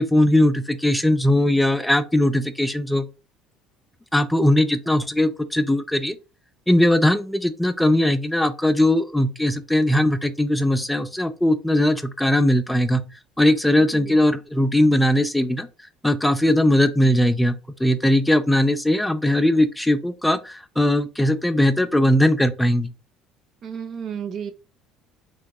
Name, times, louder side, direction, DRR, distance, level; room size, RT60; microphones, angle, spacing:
voice 1, 0.0-3.1 4.1-6.2 6.7-13.0 13.4-15.7 16.0-22.9, left 1 dB, 5° left, 0.4 m, -19 dB
voice 2, 23.6-24.5, right 7 dB, 55° right, 0.5 m, -32 dB
3.5 x 2.8 x 2.2 m
supercardioid pair, 80°, 0 cm